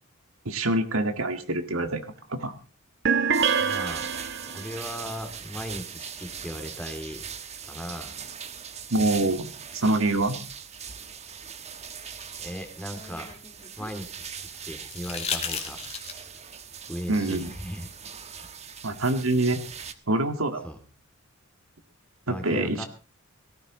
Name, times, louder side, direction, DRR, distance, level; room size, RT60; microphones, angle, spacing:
voice 1, 0.5-2.0 2.3-2.5 8.9-10.4 17.1-17.5 18.8-19.6 20.1-20.7 22.3-22.8, right 2 dB, 75° right, 7 dB, 1.8 m, -25 dB
sound 1, 3.0-4.8, right 6 dB, 55° right, 1.0 m, -25 dB
sound 2, 3.3-19.9, right 7 dB, 30° right, 1.2 m, -41 dB
voice 2, 3.6-4.1 4.4-7.3 7.6-8.2 12.4-13.4 13.8-15.8 16.9-17.9 18.4-18.5 20.6-20.8 22.3-22.9, equal, 5° left, 6 dB, 2.9 m, -37 dB
sound 3, 11.7-14.0 14.9-16.4 18.1-18.2, left 6 dB, 30° left, 2.4 m, -35 dB
18.0 x 14.5 x 4.0 m, 0.35 s
head